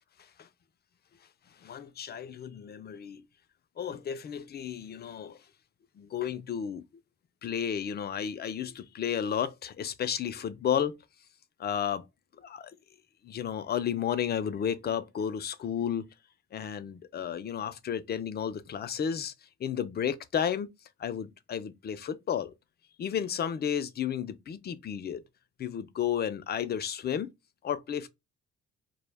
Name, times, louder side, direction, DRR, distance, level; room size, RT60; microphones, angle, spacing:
voice 1, 1.6-3.2 3.8-5.4 6.0-6.8 7.4-11.0 11.6-12.1 12.4-12.7 13.2-16.1 16.5-20.7 21.0-22.5 23.0-25.2 25.6-27.3 27.6-28.1, left 8 dB, 35° left, 0.4 m, -32 dB
2.1 x 2.1 x 3.2 m
cardioid pair, 90°, 30 cm